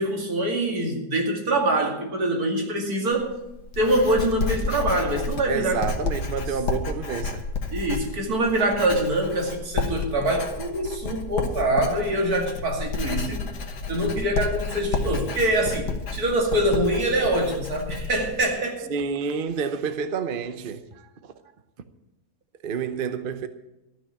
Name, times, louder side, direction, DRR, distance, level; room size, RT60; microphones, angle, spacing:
voice 1, 0.0-3.3 3.8-5.8 7.7-13.4 13.9-18.9, right 1 dB, 65° right, 2.8 m, -24 dB
Writing, 3.1-18.5, left 4 dB, 85° left, 1.8 m, -31 dB
voice 2, 5.5-7.4 18.9-21.3 22.6-23.5, right 6 dB, 50° right, 0.7 m, -29 dB
13.0 x 6.1 x 9.7 m
omnidirectional pair, 1.7 m